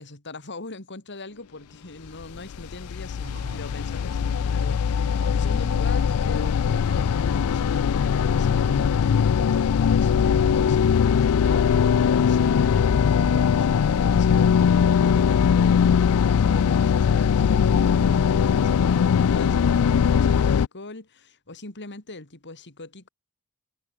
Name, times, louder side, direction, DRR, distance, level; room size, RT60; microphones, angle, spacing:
voice 1, 0.0-23.1, left 2 dB, 50° left, 3.0 m, -41 dB
sound 1, 2.2-20.7, left 7 dB, 70° left, 0.4 m, -20 dB
sound 2, 3.2-9.9 10.2-15.1, right 1 dB, 50° right, 4.0 m, -46 dB
head